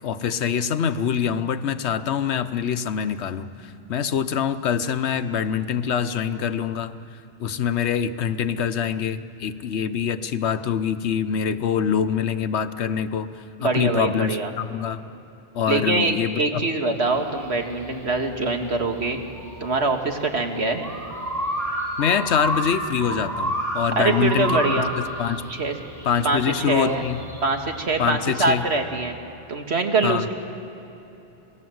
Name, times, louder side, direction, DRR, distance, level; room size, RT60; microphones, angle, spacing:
voice 1, 0.0-6.9 7.4-15.0 15.5-16.6 22.0-25.4 26.0-27.2 28.0-28.6 30.0-30.3, left 7 dB, 85° left, 12 dB, 1.1 m, -25 dB
voice 2, 13.6-14.5 15.7-19.2 19.6-20.9 24.0-24.9 25.5-25.8 26.2-26.4 26.7-27.0 27.4-29.1 29.5-30.3, right 3 dB, 75° right, 4 dB, 2.2 m, -23 dB
sound 1, 17.0-28.5, equal, ahead, 7.8 m, -31 dB
27.0 x 19.5 x 7.9 m, 3.0 s
omnidirectional pair, 1.1 m